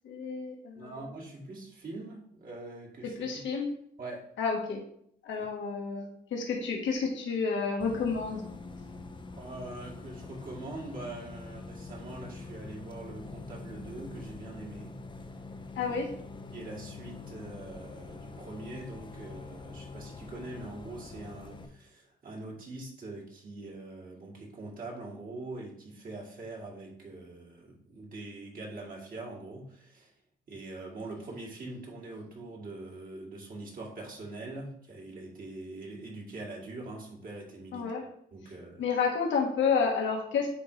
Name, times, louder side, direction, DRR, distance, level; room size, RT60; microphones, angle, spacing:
voice 1, 0.0-0.9 3.2-3.7 4.4-4.8 5.2-8.4 15.7-16.1 37.7-38.0 38.8-40.5, left 5 dB, 70° left, 0 dB, 1.4 m, -30 dB
voice 2, 0.8-3.2 4.0-4.3 9.4-14.9 15.9-16.0 16.5-30.1 30.5-37.9 38.3-38.8, right 2 dB, 45° right, -2 dB, 2.3 m, -43 dB
Bus, 7.8-21.7, left 3 dB, 25° left, 0.7 m, -45 dB
9.5 x 3.6 x 3.2 m, 0.67 s
cardioid pair, 90°, 20 cm